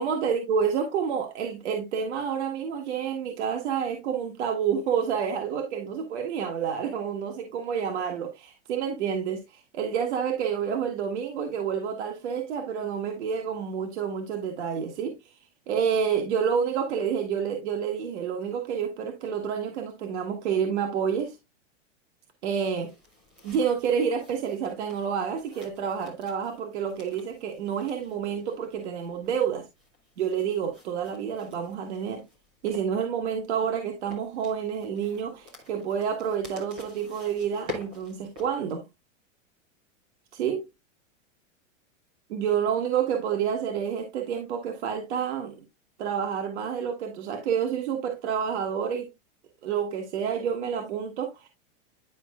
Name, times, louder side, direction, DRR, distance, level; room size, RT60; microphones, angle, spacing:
voice 1, 0.0-15.2 15.7-21.4 22.4-22.9 23.4-29.7 30.2-32.2 32.6-38.8 40.3-40.6 42.3-45.5 46.0-49.1 49.6-51.5, right 7 dB, 60° right, 1.4 m, -29 dB
sound 1, 22.4-38.7, left 2 dB, 10° right, 0.3 m, -48 dB
10.0 x 5.2 x 2.3 m
supercardioid pair, 175°, 39 cm